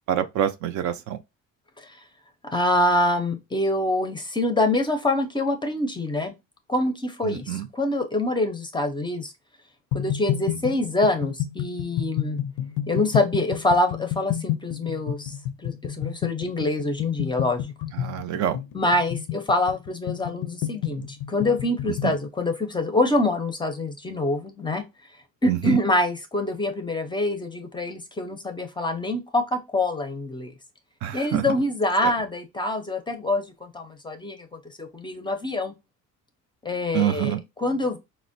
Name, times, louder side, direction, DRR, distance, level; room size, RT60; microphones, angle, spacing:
voice 1, 0.1-1.2 7.2-7.7 17.9-18.6 22.0-22.1 25.5-25.8 31.0-31.5 32.0-32.1 36.9-37.4, right 11 dB, 65° right, 0.5 m, -26 dB
voice 2, 2.4-6.3 6.7-9.3 9.9-12.4 12.9-15.3 15.6-17.7 18.7-24.8 25.4-30.5 31.1-35.7 36.6-38.0, left 2 dB, 15° left, 0.5 m, -25 dB
sound 1, 9.9-22.2, left 11 dB, 90° left, 0.5 m, -30 dB
4.2 x 2.0 x 2.5 m
cardioid pair, 115°, 32 cm